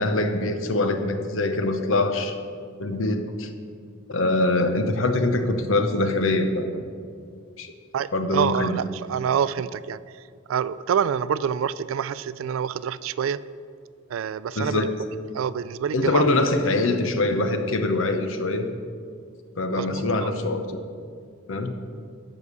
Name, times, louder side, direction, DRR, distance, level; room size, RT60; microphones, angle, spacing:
voice 1, 0.0-2.3 2.8-3.5 4.1-6.9 7.6-7.7 8.1-8.8 14.6-14.9 15.9-18.7 19.6-20.8 21.5-21.7, left 2 dB, 70° left, 7 dB, 0.8 m, -23 dB
voice 2, 7.9-10.0 10.5-13.4 14.1-14.9 15.3-16.2 19.7-20.3, right 8 dB, 70° right, 17 dB, 0.3 m, -26 dB
12.0 x 4.9 x 6.7 m, 2.2 s
head